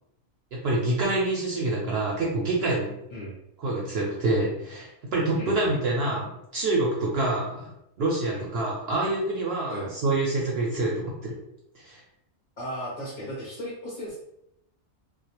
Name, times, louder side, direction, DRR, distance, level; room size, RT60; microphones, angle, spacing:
voice 1, 0.5-2.9 3.6-6.3 6.5-7.7 8.0-11.3 11.7-12.0, right 2 dB, 65° right, -3 dB, 0.6 m, -26 dB
voice 2, 5.3-5.8 8.3-8.5 9.7-9.9 12.6-14.2, equal, 45° left, -6 dB, 0.5 m, -36 dB
2.3 x 2.1 x 2.9 m, 0.80 s
omnidirectional pair, 1.4 m